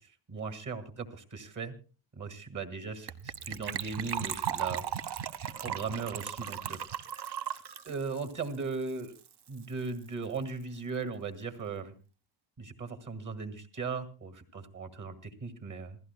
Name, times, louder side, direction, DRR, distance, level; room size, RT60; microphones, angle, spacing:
voice 1, 0.0-1.8 2.2-7.2 7.8-9.1 9.5-11.9 12.6-16.0, right 4 dB, 40° right, 9 dB, 2.3 m, -38 dB
Gurgling / Trickle dribble / Fill (with liquid), 3.1-9.3 9.6-9.7 9.8-10.1 10.4-10.5, right 9 dB, 55° right, 1.3 m, -37 dB
27.5 x 16.5 x 2.2 m, 0.34 s
wide cardioid pair, 160°, 47 cm